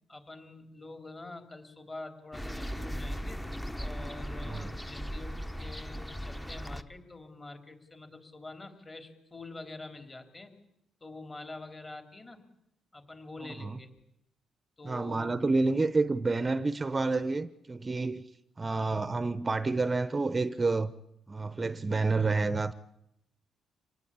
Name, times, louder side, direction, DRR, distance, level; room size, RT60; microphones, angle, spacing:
voice 1, 0.1-3.4 3.8-10.5 11.0-12.4 12.9-13.9 14.8-15.4 15.6-15.9 18.6-19.0, left 2 dB, 25° left, 3.7 m, -46 dB
sound 1, 2.3-6.8, equal, 10° left, 1.1 m, -38 dB
voice 2, 14.8-18.2 18.6-20.9 21.3-22.7, right 3 dB, 25° right, 0.8 m, -29 dB
25.5 x 19.0 x 8.7 m
cardioid pair, 90°, 0 cm